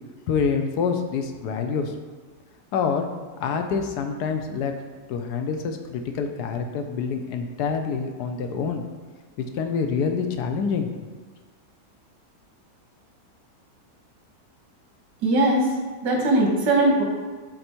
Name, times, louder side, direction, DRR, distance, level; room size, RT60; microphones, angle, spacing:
voice 1, 0.3-1.9 2.7-3.1 3.4-4.7 5.1-8.8 9.4-10.9, left 5 dB, 70° left, 5 dB, 1.2 m, -26 dB
voice 2, 15.2-17.0, right 2 dB, 85° right, 0 dB, 1.9 m, -20 dB
7.8 x 4.0 x 4.4 m, 1.4 s
omnidirectional pair, 1.9 m